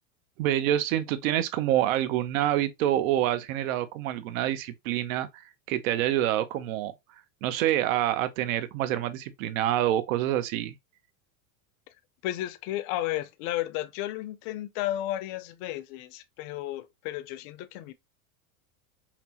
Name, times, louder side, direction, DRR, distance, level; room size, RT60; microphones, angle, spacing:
voice 1, 0.4-6.9 7.4-10.7, right 12 dB, 65° right, 0.7 m, -27 dB
voice 2, 12.2-17.9, left 14 dB, 40° left, 0.5 m, -33 dB
5.7 x 2.0 x 2.8 m
supercardioid pair, 150°, 43 cm